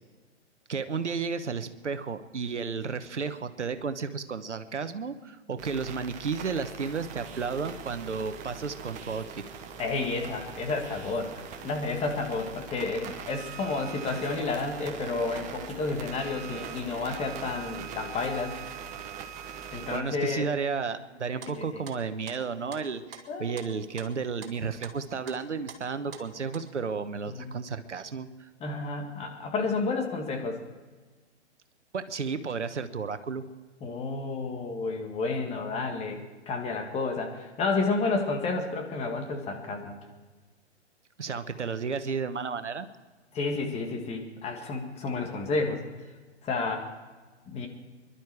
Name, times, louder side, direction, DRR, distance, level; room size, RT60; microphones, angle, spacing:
voice 1, 0.7-9.4 19.8-28.5 31.9-33.4 35.5-35.6 41.2-42.9, right 5 dB, 80° right, 10 dB, 1.2 m, -33 dB
sound 1, 5.6-20.0, right 7 dB, 20° right, 1.2 m, -42 dB
voice 2, 9.8-18.6 19.7-20.5 21.5-21.8 23.3-23.5 27.3-27.5 28.6-30.6 33.8-40.0 43.3-45.8 46.4-46.9 47.5-47.7, left 3 dB, 20° left, 3 dB, 1.9 m, -31 dB
sound 2, 21.4-26.6, right 5 dB, 50° right, 2.5 m, -47 dB
24.5 x 12.0 x 4.7 m, 1.3 s
figure-of-eight pair, 120°, 35 cm